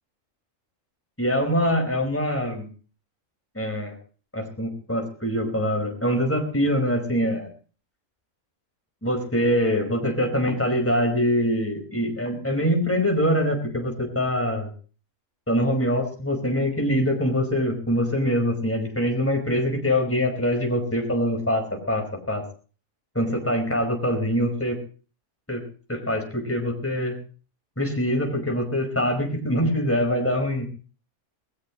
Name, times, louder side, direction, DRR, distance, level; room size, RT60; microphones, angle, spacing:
voice 1, 1.2-2.7 3.6-3.9 4.3-7.5 9.0-14.7 15.5-22.4 23.2-24.8 25.5-25.6 25.9-27.2 27.8-30.7, equal, 10° left, 2 dB, 5.1 m, -24 dB
19.5 x 19.5 x 3.1 m, 0.39 s
omnidirectional pair, 1.4 m